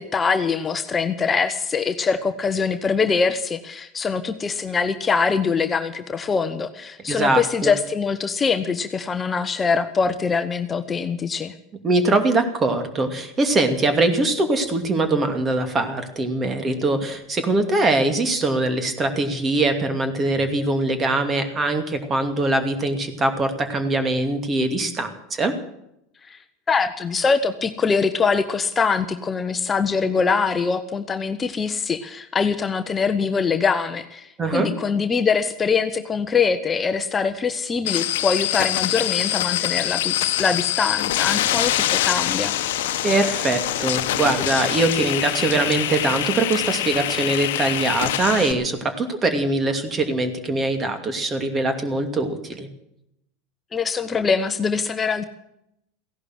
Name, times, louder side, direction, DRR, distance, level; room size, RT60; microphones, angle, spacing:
voice 1, 0.0-11.5 26.2-26.4 26.7-42.5 53.7-55.2, left 5 dB, 25° left, 9 dB, 1.0 m, -23 dB
voice 2, 7.1-7.7 11.8-25.5 34.4-34.7 43.0-52.7, right 2 dB, 25° right, 7 dB, 2.6 m, -22 dB
sound 1, 37.9-48.5, left 13 dB, 70° left, 1.1 m, -24 dB
16.0 x 11.5 x 7.8 m, 0.80 s
hypercardioid pair, 85°, 0 cm